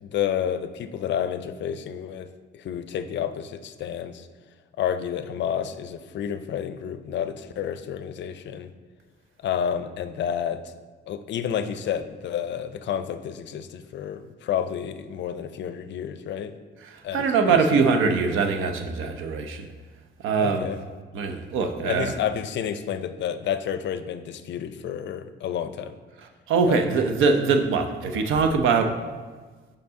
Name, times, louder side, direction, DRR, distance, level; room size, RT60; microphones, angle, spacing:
voice 1, 0.0-2.3 2.5-4.3 4.8-8.7 9.4-10.7 11.1-16.5 17.0-17.9 20.4-20.8 21.8-26.0 26.6-26.8, left 9 dB, 65° left, 10 dB, 0.5 m, -30 dB
voice 2, 16.8-19.7 20.2-20.7 21.1-22.1 26.5-28.9, right 5 dB, 85° right, 6 dB, 0.7 m, -22 dB
6.8 x 5.3 x 3.6 m, 1.4 s
cardioid pair, 90°, 20 cm